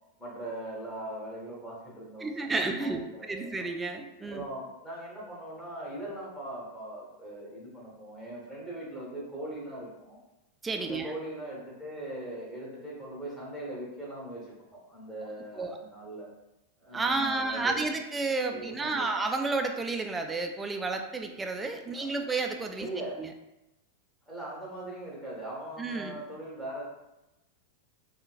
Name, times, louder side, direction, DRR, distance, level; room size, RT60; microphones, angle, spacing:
voice 1, 0.2-3.7 4.2-10.2 10.8-14.4 14.9-16.3 16.8-17.8 18.5-19.1 21.9-22.2 22.8-23.2 24.3-26.8, right 1 dB, 10° left, -6 dB, 1.1 m, -40 dB
voice 2, 2.2-3.0 3.3-4.4 10.6-11.1 15.6-15.8 16.9-22.9 23.2-23.3 25.8-26.2, right 3 dB, 15° right, 4 dB, 0.3 m, -31 dB
3.6 x 2.1 x 2.4 m, 0.94 s
figure-of-eight pair, 90°, 0 cm